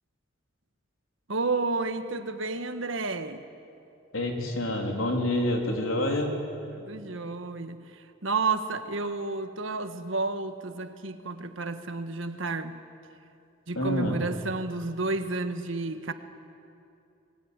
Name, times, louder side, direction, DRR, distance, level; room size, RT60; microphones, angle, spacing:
voice 1, 1.3-3.4 6.7-7.8 8.2-12.8 13.7-16.1, right 3 dB, 70° right, 9 dB, 1.5 m, -31 dB
voice 2, 4.1-6.4 13.7-14.2, left 1 dB, 85° left, 2 dB, 3.8 m, -27 dB
25.0 x 21.0 x 9.7 m, 2.6 s
head